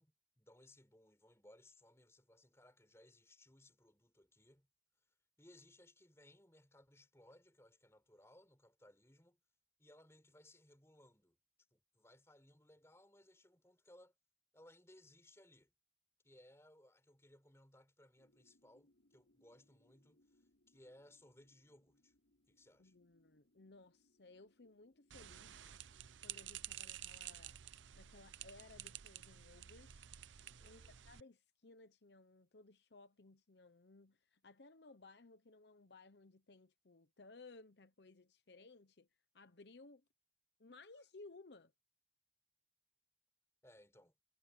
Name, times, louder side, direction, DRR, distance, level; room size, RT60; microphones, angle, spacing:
voice 1, 0.0-4.7 5.4-9.4 9.8-11.4 11.7-14.1 14.5-15.7 16.2-22.1 22.5-22.9 30.6-31.0 43.6-44.2, left 1 dB, 15° left, 4.5 m, -65 dB
sound 1, 18.2-26.9, left 1 dB, 90° left, 6.0 m, -77 dB
voice 2, 22.8-25.7 26.2-27.6 28.0-30.1 30.6-39.1 39.3-40.0 40.6-41.7, left 3 dB, 65° left, 0.9 m, -60 dB
sound 2, 25.1-31.2, right 11 dB, 85° right, 0.6 m, -51 dB
head